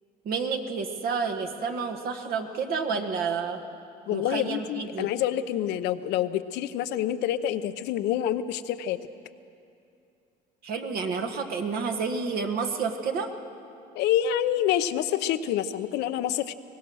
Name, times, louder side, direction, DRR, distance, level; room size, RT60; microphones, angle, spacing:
voice 1, 0.2-3.6 4.1-5.1 10.6-13.3, right 5 dB, 65° right, 4 dB, 1.6 m, -30 dB
voice 2, 4.1-9.0 14.0-16.5, left 11 dB, 85° left, 11 dB, 0.8 m, -27 dB
23.0 x 19.0 x 6.3 m, 2.6 s
cardioid pair, 110°, 17 cm